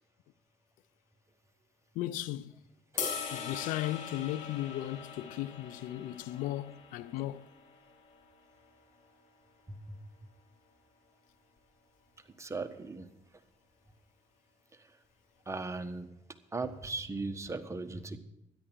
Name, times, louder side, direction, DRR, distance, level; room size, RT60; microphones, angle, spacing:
voice 1, 1.9-2.5 3.3-7.4, left 14 dB, 85° left, 0.6 m, -36 dB
sound 1, 3.0-9.2, left 7 dB, 70° left, 2.8 m, -42 dB
voice 2, 12.4-13.1 15.5-16.1 16.5-18.2, right 3 dB, 20° right, 1.4 m, -38 dB
13.0 x 10.5 x 6.2 m
supercardioid pair, 70°, 13 cm